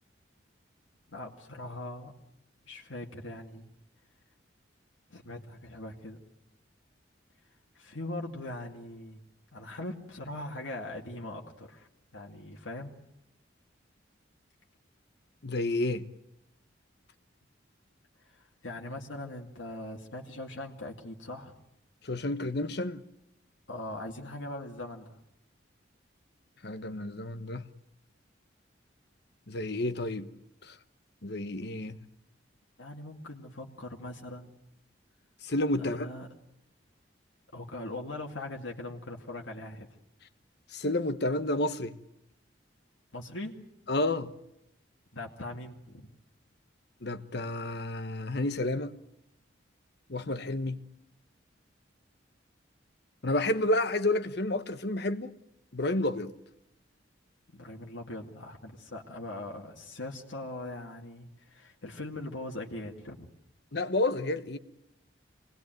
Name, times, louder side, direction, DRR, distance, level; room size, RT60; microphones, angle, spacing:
voice 1, 1.1-2.1 2.7-3.7 5.1-6.2 7.7-9.2 9.5-11.9 12.1-12.9 18.2-21.6 23.7-25.2 32.8-34.6 35.8-36.3 37.5-39.9 43.1-43.6 45.1-46.1 57.5-63.3, left 1 dB, 90° left, 2.4 m, -41 dB
voice 2, 15.4-16.1 22.0-23.0 26.6-27.6 29.5-30.3 30.6-30.7 31.2-32.0 35.4-36.1 40.7-41.9 43.9-44.3 47.0-48.9 50.1-50.8 53.2-55.3 55.7-56.3 63.7-64.6, left 2 dB, 60° left, 1.2 m, -30 dB
26.0 x 20.0 x 9.2 m
head